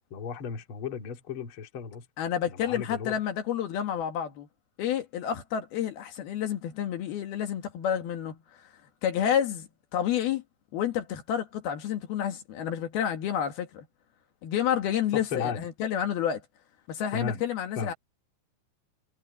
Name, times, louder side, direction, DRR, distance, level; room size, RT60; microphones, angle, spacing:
voice 1, 0.1-2.0 2.5-3.2 15.1-15.6 17.1-17.4 17.8-17.9, left 6 dB, 40° left, 2.5 m, -34 dB
voice 2, 2.2-4.5 4.8-8.4 9.0-10.4 10.7-13.9 14.4-16.4 16.9-17.9, left 9 dB, 70° left, 3.6 m, -29 dB
omnidirectional pair, 4.7 m